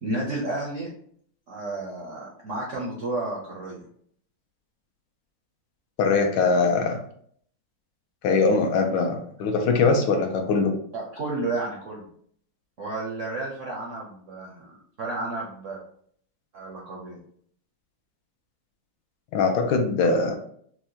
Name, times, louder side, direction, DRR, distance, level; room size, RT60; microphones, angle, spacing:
voice 1, 0.0-0.9 1.5-3.8 10.9-12.0 12.8-15.8 16.5-17.2, right 2 dB, 65° right, -3 dB, 0.7 m, -32 dB
voice 2, 6.0-7.0 8.2-10.7 19.3-20.3, left 4 dB, 80° left, 4 dB, 1.3 m, -22 dB
4.5 x 2.1 x 2.7 m, 0.62 s
omnidirectional pair, 2.1 m